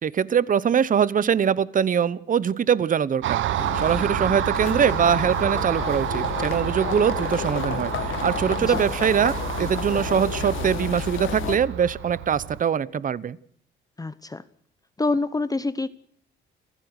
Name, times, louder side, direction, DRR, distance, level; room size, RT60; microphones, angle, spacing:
voice 1, 0.0-13.4, right 8 dB, 40° right, 20 dB, 0.9 m, -23 dB
Car passing by, 3.2-12.6, right 13 dB, 75° right, 0.9 m, -29 dB
sound 1, 3.6-11.6, left 10 dB, 80° left, 1.8 m, -31 dB
voice 2, 14.0-14.4 15.0-15.9, left 3 dB, 20° left, 14 dB, 0.9 m, -26 dB
28.5 x 15.5 x 6.5 m, 0.63 s
cardioid pair, 90°, 20 cm